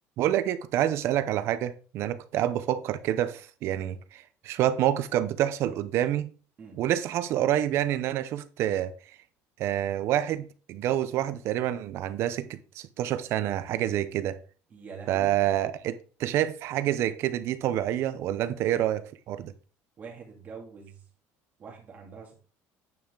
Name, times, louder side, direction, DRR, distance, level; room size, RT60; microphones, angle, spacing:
voice 1, 0.2-6.3 6.8-8.9 9.6-14.4 15.1-19.5, right 12 dB, 50° right, 0.7 m, -27 dB
voice 2, 14.7-15.3 20.0-21.0 21.6-22.4, right 5 dB, 30° right, 2.6 m, -44 dB
9.2 x 5.6 x 3.8 m
cardioid pair, 165°, 6 cm